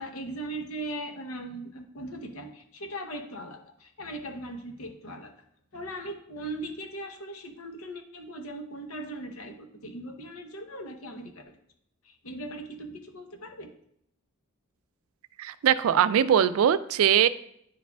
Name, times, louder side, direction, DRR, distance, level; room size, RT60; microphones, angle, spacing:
voice 1, 0.0-5.3 5.7-11.6 12.0-13.7, right 1 dB, 75° left, 5 dB, 0.9 m, -39 dB
voice 2, 15.4-17.3, right 9 dB, 70° right, 15 dB, 0.3 m, -21 dB
10.0 x 4.7 x 2.3 m, 0.72 s
head